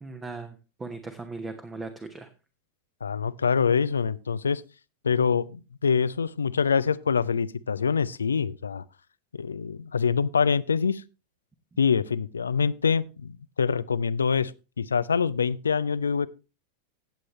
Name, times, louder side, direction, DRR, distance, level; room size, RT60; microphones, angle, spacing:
voice 1, 0.0-2.3, right 3 dB, 15° right, 1.1 m, -38 dB
voice 2, 3.0-4.6 5.0-8.8 9.3-11.0 11.8-14.5 14.8-16.3, left 6 dB, 70° left, 0.5 m, -25 dB
16.0 x 7.7 x 3.1 m
figure-of-eight pair, 90°, 0 cm